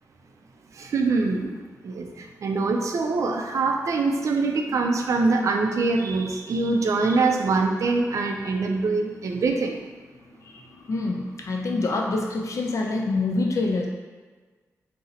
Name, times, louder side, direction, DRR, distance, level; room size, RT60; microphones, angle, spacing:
voice 1, 0.8-1.5 1.8-2.1 2.4-9.8, right 3 dB, 65° right, 3 dB, 0.4 m, -24 dB
voice 2, 10.4-13.9, left 3 dB, 65° left, 0 dB, 0.5 m, -26 dB
2.8 x 2.0 x 3.7 m, 1.4 s
wide cardioid pair, 95°, 6 cm